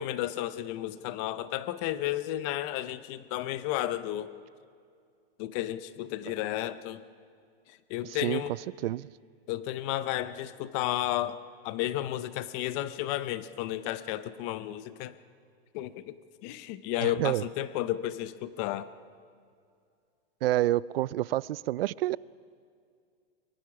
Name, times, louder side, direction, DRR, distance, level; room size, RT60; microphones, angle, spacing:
voice 1, 0.0-4.3 5.4-7.0 7.7-8.5 9.5-15.1 15.7-16.2 16.4-18.9, left 14 dB, 30° left, 0.6 m, -32 dB
voice 2, 17.0-17.4 20.4-22.2, right 15 dB, 65° right, 0.5 m, -28 dB
23.0 x 22.0 x 6.0 m
supercardioid pair, 160°, 32 cm